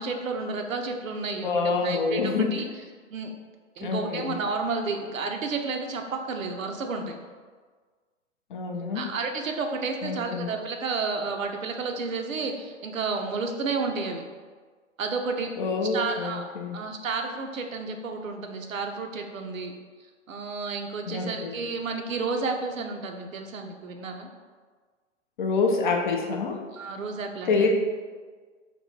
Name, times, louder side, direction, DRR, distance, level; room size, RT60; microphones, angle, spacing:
voice 1, 0.0-2.2 2.5-2.6 3.1-3.3 3.8-7.2 8.9-14.2 15.0-15.5 15.9-16.4 16.7-19.7 20.3-24.3 26.7-27.7, right 4 dB, 80° right, 4 dB, 0.6 m, -31 dB
voice 2, 1.4-2.6 3.8-4.4 8.5-9.1 10.0-10.5 15.6-16.8 21.1-21.6 25.4-26.6 27.5-27.7, left 4 dB, 40° left, 2 dB, 0.4 m, -26 dB
3.2 x 2.9 x 3.1 m, 1.5 s
figure-of-eight pair, 120°, 39 cm